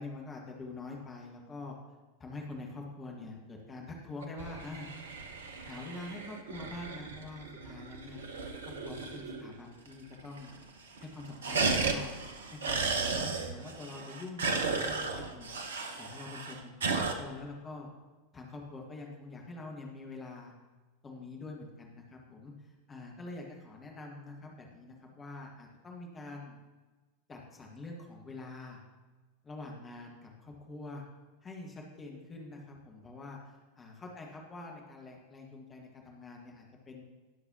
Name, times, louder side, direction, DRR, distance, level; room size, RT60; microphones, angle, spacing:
voice 1, 0.0-1.8 2.2-5.2 5.6-8.2 8.6-10.5 11.0-12.2 12.5-15.5 16.0-17.9 18.3-20.5 21.0-26.6 27.3-28.8 29.4-31.1 31.4-37.0, left 2 dB, 20° left, 0 dB, 1.6 m, -45 dB
sound 1, 4.2-9.5 9.9-10.0 10.2-10.7 11.0-17.1, right 4 dB, 65° right, 0.9 m, -35 dB
18.5 x 6.5 x 2.9 m, 1.3 s
figure-of-eight pair, 90°, 0 cm